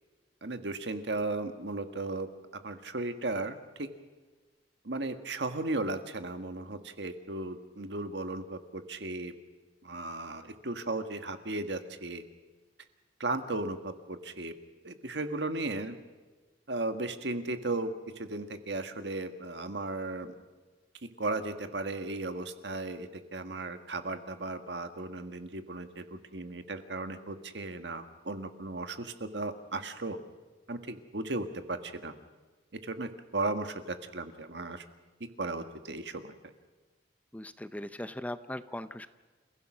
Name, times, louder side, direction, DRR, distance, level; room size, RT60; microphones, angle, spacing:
voice 1, 0.4-2.3 2.6-3.9 4.8-9.3 9.8-12.2 13.2-14.5 14.8-16.0 16.7-20.3 21.2-30.2 30.7-32.1 32.8-34.8 35.4-36.3, right 2 dB, 70° right, 8 dB, 1.6 m, -36 dB
voice 2, 37.3-39.1, left 1 dB, 10° left, 12 dB, 0.6 m, -39 dB
29.0 x 16.0 x 6.2 m, 1.3 s
head